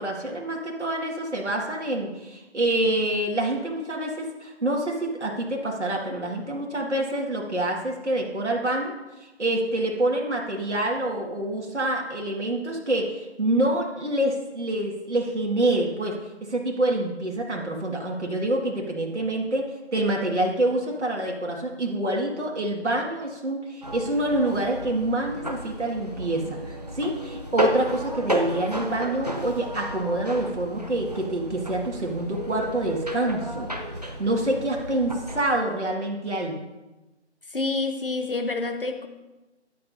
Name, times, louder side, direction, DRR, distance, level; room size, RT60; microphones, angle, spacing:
voice 1, 0.0-8.9 9.2-16.1 16.5-19.6 19.9-33.7 34.2-36.6, right 1 dB, 75° right, -1 dB, 2.1 m, -26 dB
sound 1, 23.8-35.4, right 1 dB, 35° right, 0.7 m, -33 dB
voice 2, 37.5-39.1, left 3 dB, 50° left, 6 dB, 1.1 m, -28 dB
13.0 x 9.8 x 2.8 m, 1.1 s
figure-of-eight pair, 175°, 35 cm